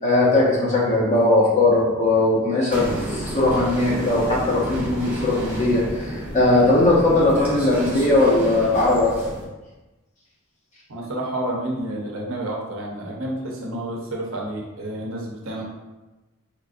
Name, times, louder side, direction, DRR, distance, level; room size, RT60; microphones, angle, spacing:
voice 1, 0.0-9.1 13.6-13.7, left 2 dB, 30° left, -5 dB, 0.6 m, -19 dB
sound 1, 2.7-9.4, equal, 5° right, 0.8 m, -31 dB
voice 2, 10.9-15.6, right 1 dB, 60° right, -2 dB, 0.7 m, -30 dB
4.5 x 2.5 x 2.5 m, 1.1 s
head